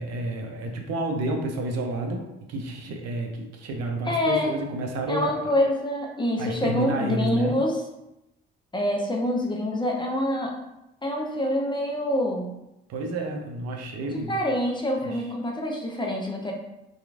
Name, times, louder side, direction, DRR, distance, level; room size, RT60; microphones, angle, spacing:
voice 1, 0.0-5.5 6.4-7.5 12.9-14.3 15.0-15.3, right 2 dB, 55° right, 2 dB, 0.6 m, -30 dB
voice 2, 4.1-4.5 5.1-7.8 8.7-10.5 11.0-12.5 14.3-16.5, left 1 dB, 15° left, 0 dB, 0.5 m, -26 dB
2.9 x 2.3 x 2.4 m, 0.91 s
hypercardioid pair, 50°, 30 cm